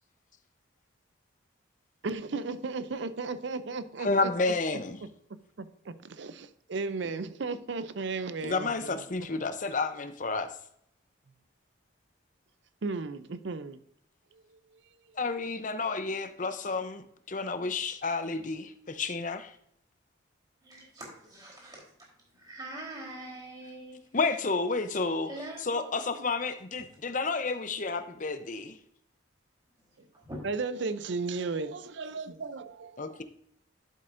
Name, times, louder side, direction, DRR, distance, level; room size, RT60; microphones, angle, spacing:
voice 1, 2.0-4.3 5.6-9.0 9.3-9.5 12.8-13.8 30.4-33.1, right 4 dB, 65° right, 13 dB, 0.5 m, -35 dB
voice 2, 4.0-5.0 8.4-10.5 15.2-19.5 24.1-25.3 25.6-28.8 33.0-33.2, left 3 dB, 40° left, 10 dB, 0.7 m, -31 dB
voice 3, 20.6-24.0 25.3-25.8 30.1-30.4, right 1 dB, 20° right, -3 dB, 3.7 m, -43 dB
11.0 x 7.6 x 2.6 m, 0.69 s
head